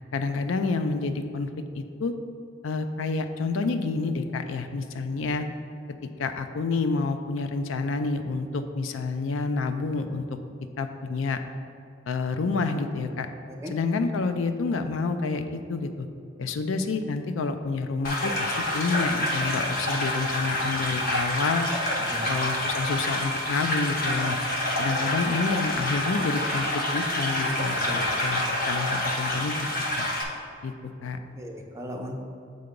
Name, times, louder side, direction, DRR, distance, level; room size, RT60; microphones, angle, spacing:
voice 1, 0.1-1.5 1.7-2.1 2.6-5.5 6.0-10.3 10.8-11.4 12.1-13.3 13.7-16.1 16.4-21.7 22.3-24.4 24.8-29.6 30.0-30.1 30.6-30.7 31.0-31.2, left 4 dB, 85° left, 8 dB, 0.4 m, -28 dB
sound 1, 18.0-30.2, left 1 dB, 50° left, 0.9 m, -27 dB
voice 2, 22.1-22.5 27.4-27.5 28.4-28.6 31.4-32.1, equal, 15° right, 0 dB, 0.6 m, -36 dB
6.9 x 3.8 x 5.1 m, 2.5 s
head